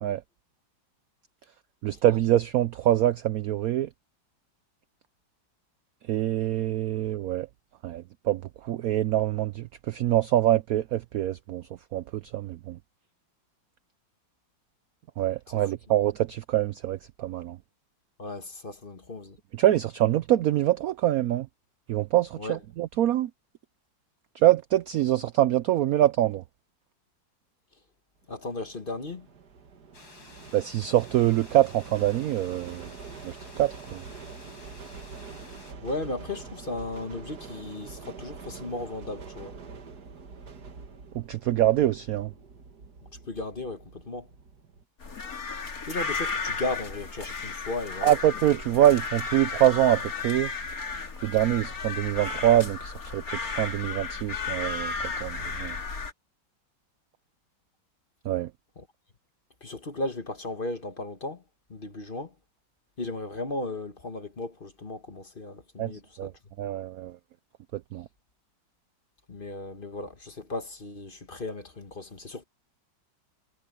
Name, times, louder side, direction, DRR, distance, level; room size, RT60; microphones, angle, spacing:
voice 1, 1.8-3.9 6.1-7.5 7.8-12.8 15.2-17.6 19.5-21.5 21.9-23.3 24.3-26.4 30.5-32.9 33.2-34.0 41.1-42.3 48.0-50.5 51.2-55.8 58.2-58.5 65.8-66.3 66.6-67.2 67.7-68.1, right 13 dB, 80° right, 0.8 m, -25 dB
voice 2, 18.2-19.4 22.4-22.6 28.3-29.3 35.8-39.5 43.3-44.3 45.8-48.1 58.8-58.9 59.6-61.4 61.7-62.3 63.0-66.3 69.3-72.4, left 2 dB, 30° left, 1.4 m, -35 dB
sound 1, 28.4-44.8, right 5 dB, 55° right, 2.2 m, -45 dB
sound 2, 29.9-35.7, left 3 dB, 80° left, 5.9 m, -51 dB
sound 3, 45.0-56.1, left 4 dB, 50° left, 2.8 m, -34 dB
omnidirectional pair, 2.1 m